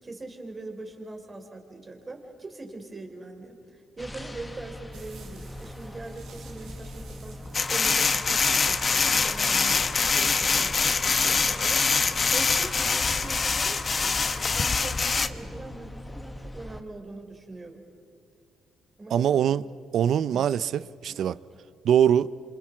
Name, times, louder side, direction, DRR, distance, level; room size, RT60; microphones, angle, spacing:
voice 1, 0.0-7.4 7.7-14.2 14.5-17.8 19.0-19.4 20.3-20.5 21.1-21.2, right 2 dB, 25° right, 4.1 m, -42 dB
sound 1, 4.0-16.8, left 1 dB, 15° left, 1.5 m, -41 dB
sound 2, 4.9-14.7, right 6 dB, 85° right, 4.4 m, -51 dB
sound 3, 7.5-15.3, left 4 dB, 35° left, 1.1 m, -24 dB
voice 2, 19.1-19.6 19.9-21.4 21.8-22.3, right 9 dB, 70° right, 0.6 m, -22 dB
27.5 x 27.0 x 6.1 m
cardioid pair, 90°, 0 cm